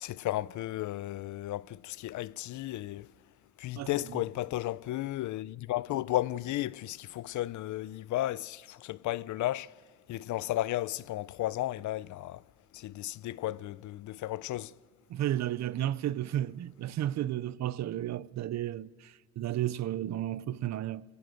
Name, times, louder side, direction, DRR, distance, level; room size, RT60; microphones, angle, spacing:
voice 1, 0.0-3.1 3.6-9.7 10.1-12.4 12.7-14.7, left 15 dB, 75° left, 0.6 m, -34 dB
voice 2, 3.8-4.2 15.1-21.0, right 12 dB, 65° right, 0.6 m, -33 dB
23.0 x 17.5 x 7.8 m
cardioid pair, 90°, 30 cm